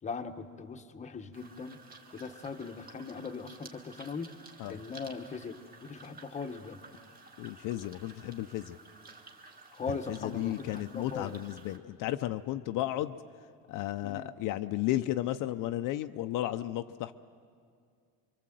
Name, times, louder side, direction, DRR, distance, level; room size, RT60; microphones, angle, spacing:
voice 1, 0.0-1.8 2.1-4.3 4.7-5.6 5.8-6.8 9.7-10.7 10.9-11.3 14.0-14.3, left 5 dB, 20° left, 6 dB, 1.0 m, -39 dB
sound 1, 1.3-11.8, right 3 dB, 25° right, 1.7 m, -53 dB
voice 2, 7.4-8.8 9.9-13.2 13.7-17.1, left 14 dB, 60° left, 9 dB, 0.7 m, -34 dB
25.0 x 24.5 x 7.7 m, 2.2 s
cardioid pair, 165°, 36 cm